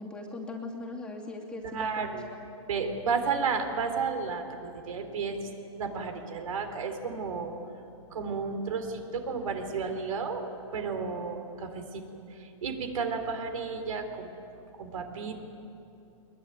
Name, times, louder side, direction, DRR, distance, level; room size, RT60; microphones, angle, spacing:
voice 1, 0.0-2.2, left 2 dB, 5° left, -2 dB, 2.6 m, -39 dB
voice 2, 1.7-2.3 2.7-5.4 5.8-7.6 8.1-10.4 10.7-12.0 12.3-14.3 14.8-15.4, right 5 dB, 75° right, 6 dB, 3.7 m, -32 dB
22.5 x 21.5 x 9.4 m, 2.8 s
hypercardioid pair, 155°, 18 cm